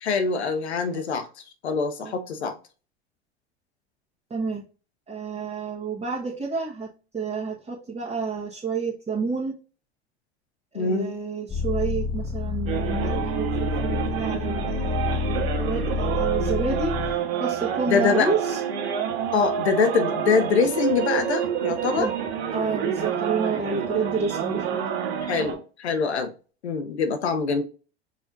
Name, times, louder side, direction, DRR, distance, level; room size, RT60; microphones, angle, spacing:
voice 1, 0.0-1.3 1.6-2.6 10.7-11.1 17.9-18.3 19.3-22.1 25.2-26.3 26.6-27.6, left 5 dB, 90° left, 0.7 m, -24 dB
voice 2, 4.3-4.6 5.1-9.5 10.7-16.9 17.4-18.6 21.9-22.1 22.5-24.9, right 4 dB, 20° right, 1.3 m, -29 dB
sound 1, 11.5-17.1, left 5 dB, 15° left, 1.1 m, -28 dB
sound 2, 12.7-25.5, right 8 dB, 65° right, 1.4 m, -28 dB
4.9 x 4.2 x 2.6 m
hypercardioid pair, 85°, 32 cm